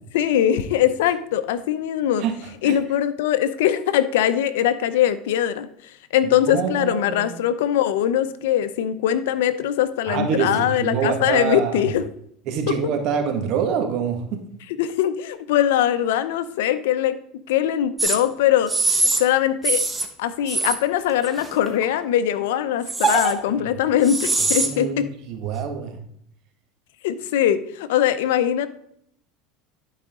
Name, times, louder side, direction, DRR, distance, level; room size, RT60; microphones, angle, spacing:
voice 1, 0.1-2.2 2.6-5.7 6.1-12.0 14.8-17.2 17.5-19.8 20.2-25.1 27.0-28.7, left 10 dB, 85° left, 13 dB, 0.7 m, -21 dB
voice 2, 2.2-2.8 6.5-7.3 10.1-11.9 12.5-14.4 23.5-23.7 24.6-26.0, right 7 dB, 55° right, 4 dB, 1.7 m, -26 dB
sound 1, 18.0-18.2 18.7-19.2 19.6-20.1 20.5-20.7 21.2-21.8 22.9-23.3 24.0-24.7, right 3 dB, 10° right, 1.2 m, -22 dB
11.5 x 5.0 x 3.7 m, 0.70 s
supercardioid pair, 115°, 0 cm